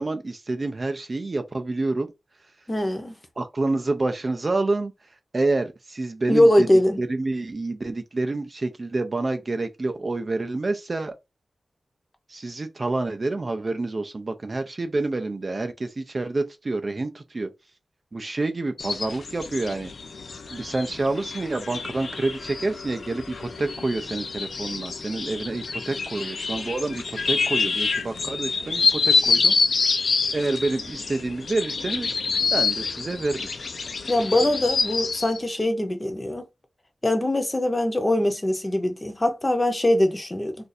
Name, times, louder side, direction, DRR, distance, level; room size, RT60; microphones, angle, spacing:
voice 1, 0.0-2.1 3.4-6.7 7.0-11.1 12.3-17.5 18.1-19.9 20.5-29.5 30.3-32.2 32.5-33.5, right 2 dB, 35° right, 0.4 m, -28 dB
voice 2, 2.7-3.1 6.3-7.0 34.1-36.5 37.0-40.6, left 1 dB, 20° left, 0.7 m, -22 dB
sound 1, 18.8-35.4, left 4 dB, 65° left, 0.5 m, -27 dB
2.5 x 2.4 x 4.0 m
wide cardioid pair, 125°, 0 cm